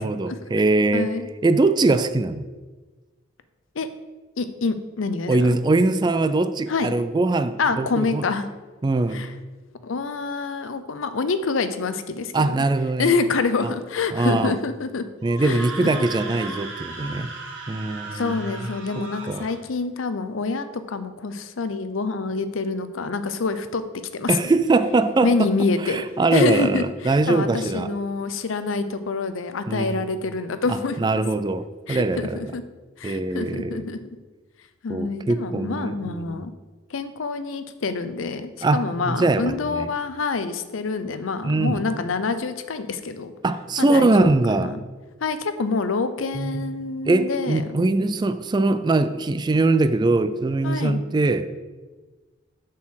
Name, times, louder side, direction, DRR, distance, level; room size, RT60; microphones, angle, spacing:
voice 1, 0.0-1.1 1.4-2.4 5.3-8.2 8.8-9.2 12.3-13.1 14.1-14.6 15.2-17.3 17.7-18.4 19.3-19.5 24.3-25.5 25.8-27.9 29.7-30.0 30.7-32.5 33.0-33.8 34.9-36.4 38.6-39.9 41.4-41.8 43.4-44.7 46.3-51.5, right 2 dB, 20° right, 12 dB, 0.3 m, -22 dB
voice 2, 0.9-1.3 3.8-3.9 4.4-5.6 6.7-6.9 7.6-8.5 9.1-9.3 9.8-12.6 13.0-15.1 15.4-15.9 18.1-23.8 24.1-24.5 25.2-26.0 26.3-31.1 31.9-32.6 33.0-34.0 34.8-36.5 36.9-43.3 43.8-44.8 45.2-47.6 50.6-51.0, left 4 dB, 85° left, 11 dB, 0.6 m, -26 dB
Screaming, 15.2-19.6, right 2 dB, 65° right, 1.8 m, -36 dB
7.0 x 4.5 x 6.3 m, 1.3 s
head